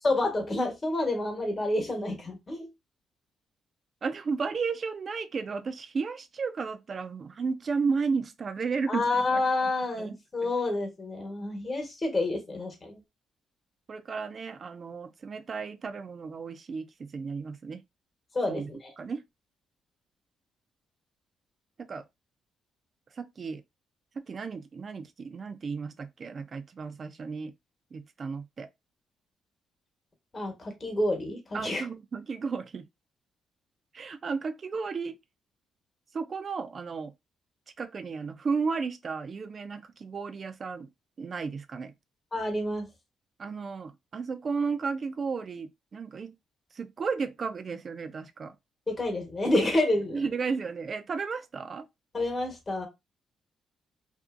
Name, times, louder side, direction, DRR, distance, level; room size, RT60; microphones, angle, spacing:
voice 1, 0.0-2.7 8.9-13.0 18.3-18.9 30.3-31.8 42.3-42.9 48.9-50.2 52.1-52.9, left 2 dB, 30° left, 1.1 m, -29 dB
voice 2, 4.0-9.4 10.0-10.5 13.9-17.8 18.5-18.7 19.0-19.2 21.8-22.0 23.2-23.6 24.2-27.5 27.9-28.7 31.5-32.9 33.9-35.2 36.1-37.1 37.8-40.9 41.2-41.9 43.4-46.3 46.7-48.5 50.1-51.9, right 5 dB, 45° right, 0.4 m, -33 dB
2.6 x 2.6 x 2.4 m
cardioid pair, 90°, 0 cm